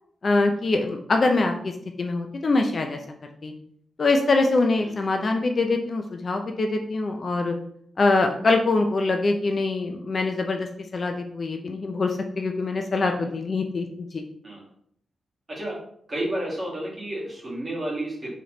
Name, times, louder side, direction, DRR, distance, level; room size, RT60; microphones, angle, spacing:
voice 1, 0.2-1.7 2.0-3.0 3.4-3.5 4.0-7.5 8.0-10.7 10.9-14.2, left 3 dB, 40° left, 4 dB, 0.3 m, -24 dB
voice 2, 16.1-18.4, right 1 dB, 30° right, -5 dB, 1.5 m, -31 dB
3.9 x 3.1 x 2.9 m, 0.67 s
wide cardioid pair, 150°, 0 cm